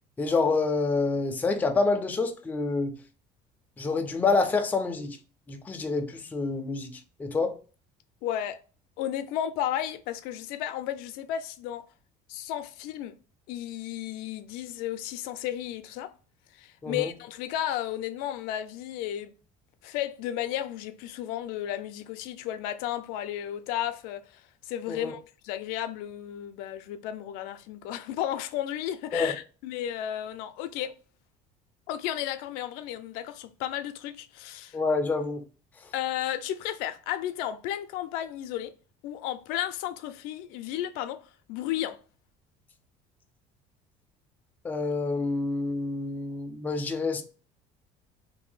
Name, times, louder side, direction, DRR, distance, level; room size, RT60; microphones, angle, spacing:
voice 1, 0.2-3.0 3.8-5.2 5.5-6.9 7.2-7.6 16.8-17.1 24.9-25.1 29.1-29.3 34.7-35.4 44.6-47.2, left 3 dB, 10° left, 0.4 m, -27 dB
voice 2, 8.2-8.6 9.0-11.9 12.3-13.2 13.5-16.1 16.6-19.3 19.8-24.2 24.6-30.9 31.9-34.8 35.9-38.7 39.0-41.2 41.5-42.0, left 11 dB, 85° left, 0.4 m, -33 dB
2.6 x 2.6 x 3.7 m
cardioid pair, 160°, 15 cm